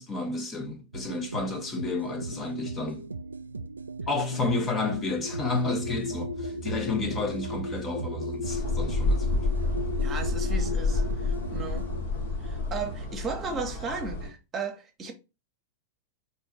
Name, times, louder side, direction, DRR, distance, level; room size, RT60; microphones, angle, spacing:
voice 1, 0.0-3.1 4.1-9.5, left 3 dB, 20° left, 0.8 m, -31 dB
sound 1, 0.9-12.0, right 3 dB, 75° right, 0.3 m, -39 dB
sound 2, 4.7-13.0, equal, 85° left, 1.4 m, -36 dB
sound 3, 8.4-14.3, left 3 dB, 55° left, 1.6 m, -29 dB
voice 2, 10.0-11.9 12.4-15.1, right 4 dB, 25° right, 1.0 m, -35 dB
4.4 x 2.6 x 4.3 m
figure-of-eight pair, 90°, 0 cm